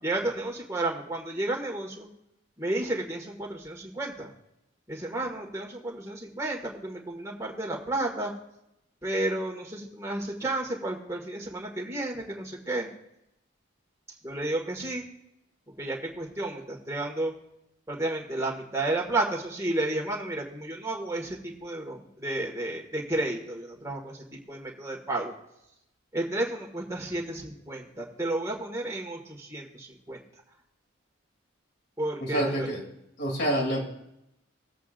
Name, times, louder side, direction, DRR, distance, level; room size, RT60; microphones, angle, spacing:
voice 1, 0.0-2.1 2.6-4.3 4.9-8.3 9.0-12.9 14.2-15.0 15.8-17.3 17.9-25.3 26.1-30.2 32.0-32.7, right 2 dB, 15° right, -1 dB, 1.9 m, -32 dB
voice 2, 32.2-32.8 33.2-33.8, right 1 dB, 55° left, 1 dB, 2.9 m, -27 dB
19.5 x 8.2 x 2.6 m, 0.83 s
head